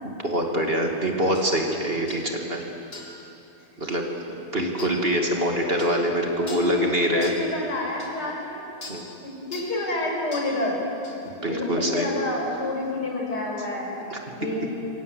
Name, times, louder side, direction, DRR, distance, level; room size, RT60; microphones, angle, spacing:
voice 1, 0.2-2.6 3.8-4.0 4.3-7.3 8.9-9.0 11.3-12.1 14.1-14.2, equal, 35° right, 1 dB, 2.7 m, -25 dB
sound 1, 1.3-1.5 2.1-2.3 2.9-3.2 3.9-4.0 4.8-5.0 5.8-6.0 6.5-6.7 7.2-7.4 8.0-8.1 8.8-9.0 9.5-9.8 10.3-10.5 11.0-11.2, left 2 dB, 35° left, 4.1 m, -40 dB
voice 2, 5.5-5.9 6.4-8.9 9.2-10.8 11.4-13.9 14.3-14.7, left 1 dB, 75° left, -1 dB, 6.1 m, -29 dB
28.0 x 24.0 x 8.3 m, 2.9 s
omnidirectional pair, 1.8 m